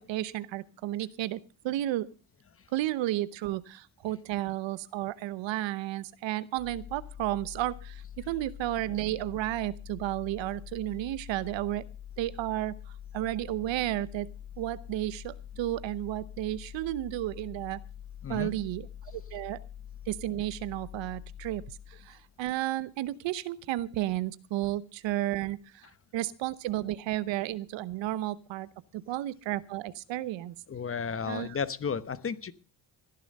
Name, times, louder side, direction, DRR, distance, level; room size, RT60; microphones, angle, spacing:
voice 1, 0.1-2.1 2.7-11.8 12.2-12.7 13.1-14.3 14.6-17.8 18.3-18.9 19.1-19.6 20.1-21.6 21.9-25.8 26.1-30.5 31.2-31.6, right 15 dB, 85° right, 17 dB, 1.0 m, -32 dB
sound 1, 6.6-22.3, left 10 dB, 75° left, 3.1 m, -45 dB
voice 2, 18.2-18.5 30.7-32.5, left 6 dB, 30° left, 15 dB, 1.0 m, -33 dB
17.5 x 11.0 x 5.4 m, 0.36 s
cardioid pair, 110°, 44 cm